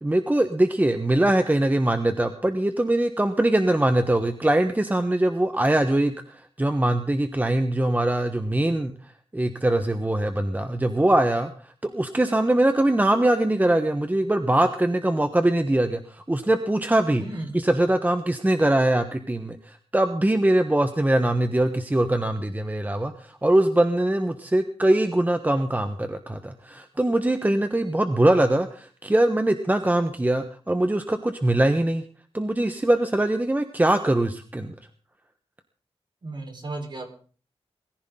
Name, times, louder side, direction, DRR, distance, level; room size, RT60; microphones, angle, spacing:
voice 1, 0.0-8.9 9.3-17.2 17.5-32.0 32.3-34.7, right 1 dB, 15° right, 8 dB, 1.2 m, -22 dB
voice 2, 17.2-17.5 36.2-37.1, right 2 dB, 45° right, 4 dB, 4.3 m, -34 dB
21.5 x 15.0 x 3.8 m, 0.41 s
wide cardioid pair, 120°, 11 cm